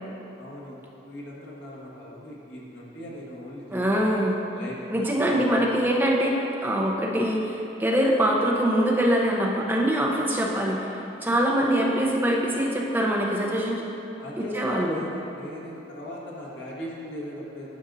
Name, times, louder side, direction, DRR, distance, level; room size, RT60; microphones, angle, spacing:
voice 1, 0.4-4.3 4.5-5.7 14.2-17.8, equal, 75° left, -5 dB, 1.5 m, -39 dB
voice 2, 3.7-4.4 4.9-6.4 6.6-10.9 11.2-13.8 14.4-15.0, equal, 10° right, -3 dB, 0.7 m, -23 dB
12.0 x 5.1 x 2.7 m, 3.0 s
head